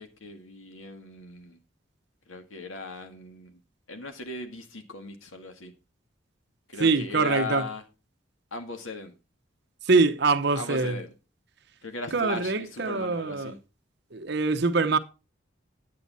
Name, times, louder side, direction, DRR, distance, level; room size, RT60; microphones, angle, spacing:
voice 1, 0.0-1.6 2.3-3.6 3.9-5.7 6.7-7.8 8.5-9.1 10.6-11.1 11.8-13.6, left 3 dB, 90° left, 2.0 m, -38 dB
voice 2, 6.8-7.7 9.9-11.0 12.1-13.5 14.1-15.0, right 4 dB, 55° right, 0.9 m, -24 dB
9.8 x 8.5 x 4.1 m
head